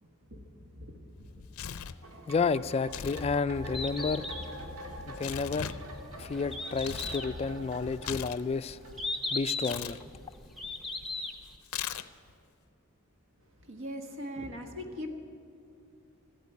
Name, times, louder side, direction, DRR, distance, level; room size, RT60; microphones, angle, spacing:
voice 1, 0.0-1.6 13.5-15.2, equal, 65° right, 5 dB, 1.4 m, -42 dB
Tearing, 1.2-2.0 2.8-3.3 3.5-7.2 7.6-9.1 9.6-10.0 11.6-12.3, left 9 dB, 90° left, 0.5 m, -40 dB
sound 1, 2.0-9.4 9.7-9.8, equal, 90° right, 1.7 m, -44 dB
voice 2, 2.3-4.3 5.1-5.7 6.2-8.8 9.3-10.0, left 4 dB, 30° left, 14 dB, 0.3 m, -31 dB
Bird, 3.6-11.6, left 3 dB, ahead, 0.8 m, -38 dB
14.0 x 8.4 x 9.5 m, 2.5 s
head